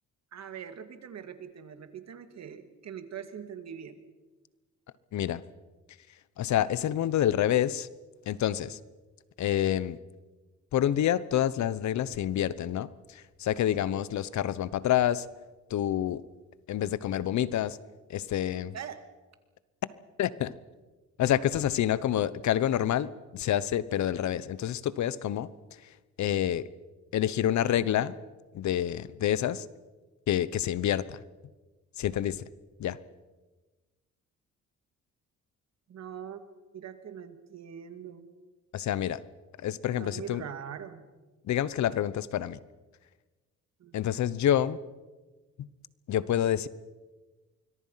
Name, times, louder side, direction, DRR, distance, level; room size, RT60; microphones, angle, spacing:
voice 1, 0.3-4.0 18.7-19.0 35.9-36.4 36.7-38.3 40.0-41.0 43.8-44.0, right 8 dB, 60° right, 9 dB, 2.3 m, -42 dB
voice 2, 6.4-7.9 8.3-8.8 9.4-10.0 10.7-15.2 15.7-16.2 16.7-17.8 18.1-18.7 20.2-20.5 21.2-25.5 26.2-26.7 27.1-28.2 28.5-29.7 30.3-31.2 32.0-32.4 32.8-33.0 38.7-39.2 39.6-40.4 41.5-42.6 43.9-44.8 45.6-45.7 46.1-46.7, left 11 dB, 70° left, 18 dB, 1.0 m, -28 dB
25.0 x 22.5 x 5.8 m, 1.2 s
cardioid pair, 90°, 30 cm